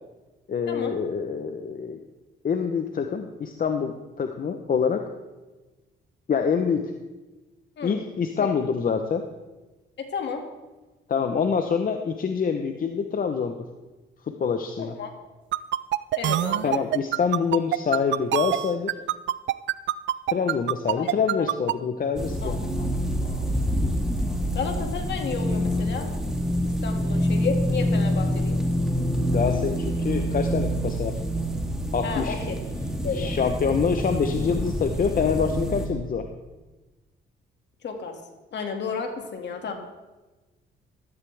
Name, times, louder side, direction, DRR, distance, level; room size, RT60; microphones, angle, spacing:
voice 1, 0.5-2.0 2.4-5.0 6.3-6.9 7.8-9.2 11.1-13.6 14.3-14.9 16.6-18.9 20.3-22.7 29.2-31.2 31.9-32.3 33.1-36.3, left 6 dB, 45° left, 6 dB, 0.9 m, -26 dB
voice 2, 10.0-10.4 14.8-15.1 16.2-16.7 21.0-21.1 21.4-21.5 22.4-23.4 24.5-26.1 26.8-28.6 32.0-32.4 33.0-33.3 37.8-38.1 38.5-39.7, left 5 dB, 60° left, 4 dB, 2.2 m, -32 dB
sound 1, 15.5-21.7, right 13 dB, 65° right, 0.5 m, -24 dB
sound 2, 22.2-35.9, equal, 5° right, 2.1 m, -26 dB
14.0 x 13.5 x 3.5 m, 1.2 s
cardioid pair, 90°, 20 cm